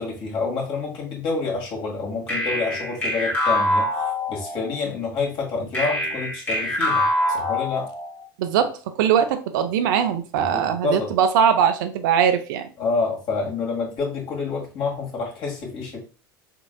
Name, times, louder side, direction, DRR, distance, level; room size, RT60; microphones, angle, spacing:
voice 1, 0.0-3.9 4.3-7.9 10.4-11.1 12.8-16.0, left 4 dB, 50° left, 1.9 m, -28 dB
sound 1, 2.3-4.8 5.7-8.3, left 1 dB, 15° left, 1.5 m, -24 dB
voice 2, 8.4-12.7, right 8 dB, 65° right, 0.5 m, -21 dB
3.9 x 3.7 x 2.2 m
hypercardioid pair, 75°, 11 cm